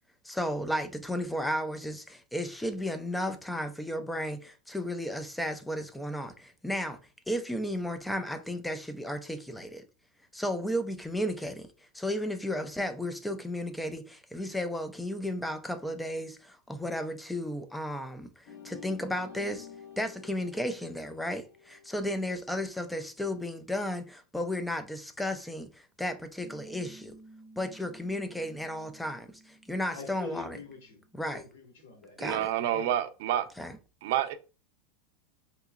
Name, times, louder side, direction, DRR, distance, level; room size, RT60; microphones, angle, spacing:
voice 1, 0.2-7.0 7.3-9.8 10.3-11.7 11.9-19.7 20.0-27.2 27.6-30.6 31.1-31.4 32.2-32.5 33.6-33.8, equal, 5° left, 0.4 m, -34 dB
sound 1, 18.5-23.1, left 8 dB, 65° left, 1.5 m, -51 dB
Piano, 26.4-31.5, right 2 dB, 50° left, 1.4 m, -55 dB
voice 2, 29.9-32.9, left 5 dB, 90° left, 1.6 m, -45 dB
voice 3, 32.2-33.4 34.0-34.3, right 11 dB, 65° right, 0.5 m, -28 dB
3.7 x 2.9 x 2.4 m
supercardioid pair, 150°, 0 cm